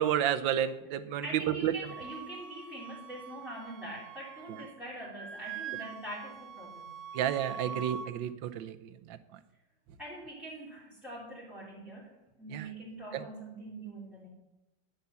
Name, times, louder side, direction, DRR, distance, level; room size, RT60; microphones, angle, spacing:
voice 1, 0.0-1.2 1.6-1.7 7.1-9.2 12.5-12.7 13.1-13.2, right 10 dB, 85° right, 11 dB, 1.5 m, -31 dB
voice 2, 1.2-7.0 7.5-7.8 10.0-12.1 12.4-14.3, right 1 dB, ahead, -7 dB, 3.0 m, -44 dB
Wind instrument woodwind instrument, 1.9-4.8 5.0-8.1, right 7 dB, 65° right, 0.7 m, -44 dB
10.5 x 9.9 x 7.0 m, 0.97 s
omnidirectional pair, 2.0 m